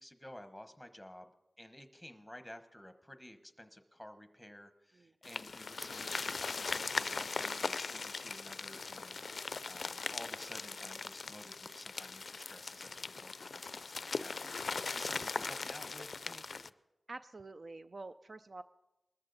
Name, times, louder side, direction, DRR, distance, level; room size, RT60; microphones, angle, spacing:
voice 1, 0.0-14.6 14.9-16.7, left 1 dB, 5° left, 9 dB, 1.1 m, -53 dB
sound 1, 5.2-16.7, left 4 dB, 60° left, 0.4 m, -40 dB
voice 2, 17.1-18.6, right 3 dB, 45° right, 11 dB, 0.4 m, -48 dB
20.5 x 13.5 x 4.0 m, 0.99 s
wide cardioid pair, 100°, 0 cm